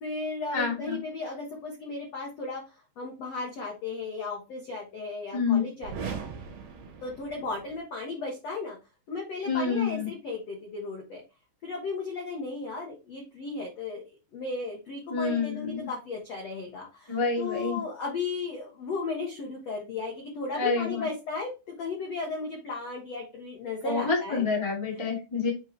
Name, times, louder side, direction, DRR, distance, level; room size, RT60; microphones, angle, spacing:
voice 1, 0.0-6.1 7.0-8.8 9.1-11.2 11.6-14.0 14.3-24.4, left 3 dB, 80° left, -1 dB, 1.4 m, -35 dB
voice 2, 0.5-1.0 5.3-5.6 9.4-10.1 15.1-15.9 17.1-17.8 20.5-21.0 23.8-25.5, left 4 dB, 15° left, -4 dB, 1.1 m, -28 dB
sound 1, 5.8-7.8, right 6 dB, 60° right, 2.5 m, -39 dB
7.7 x 4.4 x 3.3 m, 0.28 s
omnidirectional pair, 5.6 m